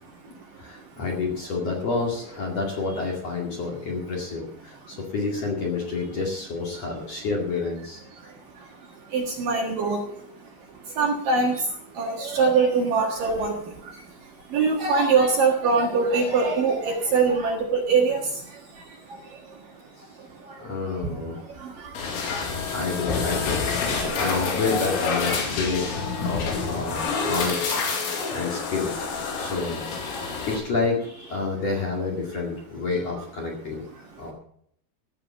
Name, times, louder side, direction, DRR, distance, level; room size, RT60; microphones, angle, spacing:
voice 1, 0.0-1.0 4.8-5.0 8.2-21.1 21.3-22.7 23.9-24.4 28.0-28.3 30.2-30.5 34.0-34.3, right 4 dB, 60° right, 1 dB, 2.8 m, -26 dB
voice 2, 0.6-8.3 20.6-21.4 22.7-25.9 26.1-28.9 29.3-29.8 30.4-33.8 34.2-34.3, left 4 dB, 45° left, -1 dB, 2.8 m, -29 dB
sound 1, 22.0-30.6, left 5 dB, 80° left, 4.6 m, -28 dB
15.5 x 7.5 x 7.2 m, 0.68 s
omnidirectional pair, 5.3 m